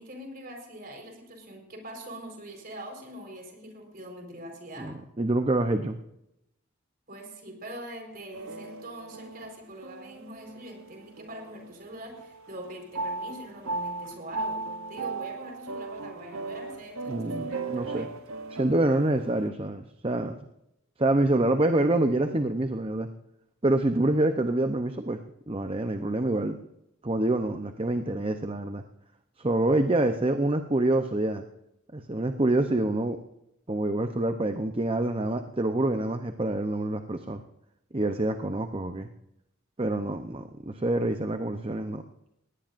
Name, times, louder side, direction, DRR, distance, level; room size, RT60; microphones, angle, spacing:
voice 1, 0.0-5.0 7.1-18.1, right 1 dB, 40° right, 2 dB, 4.4 m, -43 dB
voice 2, 4.8-6.0 17.1-18.1 18.5-20.4 21.0-23.1 23.6-25.2 25.5-26.6 27.0-28.8 29.4-31.5 31.9-33.2 33.7-37.4 37.9-39.1 39.8-42.0, right 2 dB, 25° right, 7 dB, 0.7 m, -26 dB
sound 1, 8.3-11.9 12.2-19.5, right 3 dB, 70° right, 0.8 m, -37 dB
19.5 x 18.0 x 2.6 m, 0.84 s
head